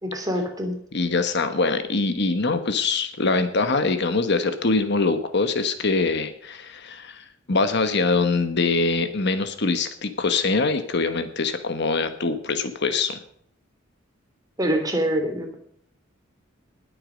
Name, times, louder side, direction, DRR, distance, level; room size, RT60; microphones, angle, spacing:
voice 1, 0.0-0.7 14.6-15.6, equal, 20° right, 3 dB, 3.1 m, -25 dB
voice 2, 0.9-13.2, left 3 dB, 60° left, 9 dB, 1.3 m, -23 dB
20.0 x 8.6 x 5.2 m, 0.65 s
head